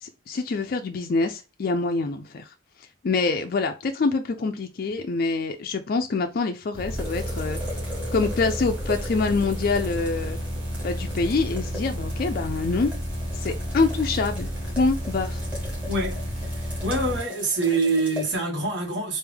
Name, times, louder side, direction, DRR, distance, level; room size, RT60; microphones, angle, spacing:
voice 1, 0.0-2.5 3.0-7.6 8.1-10.4 10.8-12.9 13.3-14.5 14.7-15.4, left 3 dB, 50° left, 0.4 m, -25 dB
sound 1, 6.7-17.2, equal, 30° right, 1.1 m, -31 dB
sound 2, 6.9-18.4, equal, 5° right, 1.8 m, -40 dB
voice 2, 15.9-16.2 16.8-19.2, right 2 dB, 60° right, 1.5 m, -25 dB
3.4 x 2.5 x 3.3 m
head